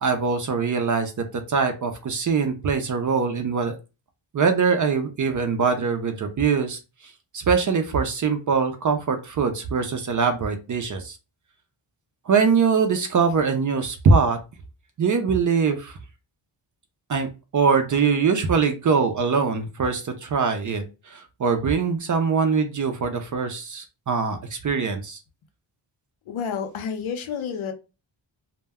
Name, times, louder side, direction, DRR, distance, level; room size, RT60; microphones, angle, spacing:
voice 1, 0.0-3.8 4.3-6.8 7.3-11.2 12.3-14.4 15.0-16.0 17.1-17.3 17.5-25.2, right 5 dB, 40° right, 7 dB, 0.5 m, -22 dB
voice 2, 26.3-27.7, left 7 dB, 85° left, 6 dB, 0.7 m, -30 dB
2.1 x 2.1 x 3.4 m, 0.30 s
wide cardioid pair, 100°, 47 cm